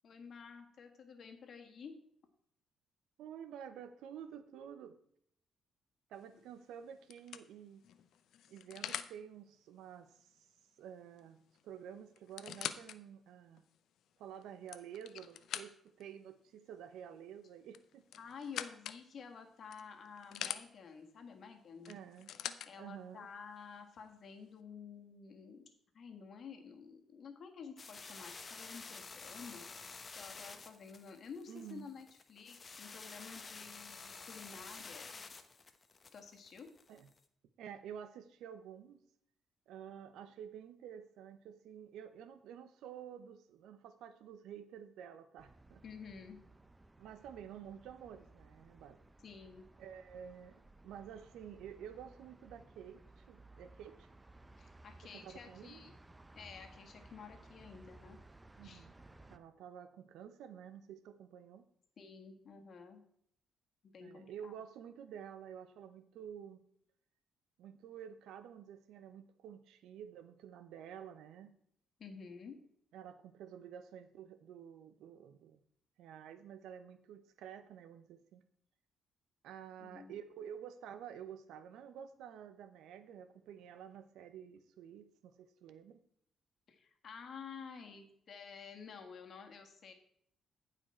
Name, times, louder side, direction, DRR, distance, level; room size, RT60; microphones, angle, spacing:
voice 1, 0.0-1.9 18.2-21.9 22.6-25.7 25.9-35.1 36.1-36.7 45.8-46.4 49.2-49.7 54.6-55.9 56.3-58.2 58.6-58.9 62.0-63.0 63.8-64.6 72.0-72.6 79.8-80.1 86.7-89.9, left 6 dB, 55° left, 4 dB, 1.7 m, -51 dB
voice 2, 3.2-5.0 6.1-7.8 8.5-10.3 10.8-13.6 14.2-18.1 21.9-22.3 22.8-23.3 31.5-31.9 36.9-37.1 37.6-39.0 39.7-45.8 47.0-49.0 49.8-54.1 55.1-55.9 58.6-59.0 59.3-61.7 64.0-66.6 67.6-71.5 72.9-75.6 76.0-78.4 79.4-86.0, right 8 dB, 85° right, 11 dB, 0.7 m, -50 dB
sound 1, 6.2-6.5 7.1-9.2 11.2-11.3 11.5-11.6 12.2-13.0 13.6-13.7 14.4-16.0 17.7-19.0 19.7-20.6 21.8-22.7 23.6-23.7, left 10 dB, 75° left, 0.5 m, -44 dB
sound 2, 27.8-37.2, left 4 dB, 35° left, 0.9 m, -50 dB
sound 3, 45.4-59.4, right 2 dB, 15° right, 0.5 m, -59 dB
14.5 x 5.0 x 4.4 m, 0.69 s
cardioid pair, 90°, 0 cm